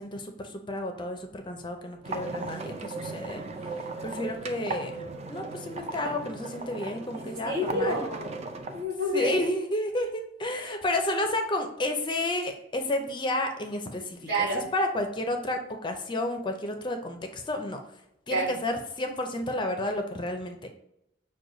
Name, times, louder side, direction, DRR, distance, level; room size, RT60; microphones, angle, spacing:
voice 1, 0.0-3.4 4.0-4.9 5.3-8.0 9.1-17.8 18.3-20.7, left 1 dB, 25° left, 5 dB, 0.5 m, -31 dB
sound 1, 2.0-8.8, right 3 dB, 35° right, 0.4 m, -37 dB
voice 2, 7.1-8.4 8.7-9.3 14.3-14.7 18.3-18.6, equal, 60° right, -3 dB, 1.7 m, -29 dB
6.3 x 2.2 x 3.8 m, 0.81 s
head